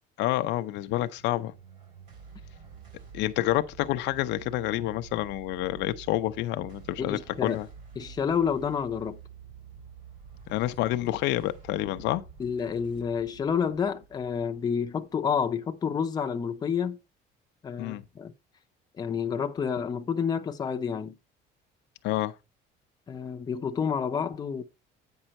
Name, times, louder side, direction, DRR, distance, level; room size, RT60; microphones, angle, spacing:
voice 1, 0.2-1.5 3.1-7.7 10.5-12.2 17.8-18.0 22.0-22.3, left 15 dB, 65° left, 0.6 m, -28 dB
sound 1, 1.2-15.8, right 7 dB, 45° right, 4.5 m, -49 dB
voice 2, 7.0-7.6 8.0-9.2 12.4-17.0 17.6-18.3 19.0-21.1 23.1-24.6, left 7 dB, 20° left, 0.7 m, -29 dB
9.0 x 5.5 x 4.2 m
cardioid pair, 165°, 19 cm